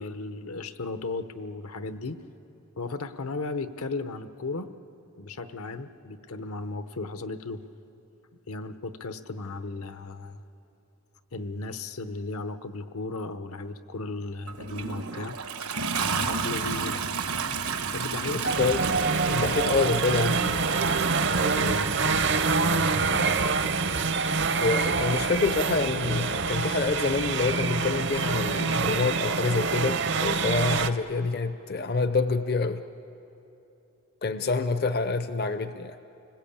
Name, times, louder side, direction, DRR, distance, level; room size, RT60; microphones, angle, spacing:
voice 1, 0.0-2.2 2.8-4.7 5.2-7.6 8.5-10.4 11.3-15.4 16.0-17.0 17.9-18.4 21.4-23.9, left 3 dB, 80° left, 10 dB, 1.0 m, -35 dB
Toilet flush, 14.5-22.9 23.9-24.0, right 5 dB, 85° right, 1.3 m, -32 dB
voice 2, 18.3-18.8 19.3-20.6 24.6-32.8 34.2-36.0, left 4 dB, 45° left, 10 dB, 0.5 m, -27 dB
sound 1, 18.4-30.9, right 4 dB, 55° right, 0.7 m, -26 dB
29.5 x 20.0 x 8.6 m, 3.0 s
head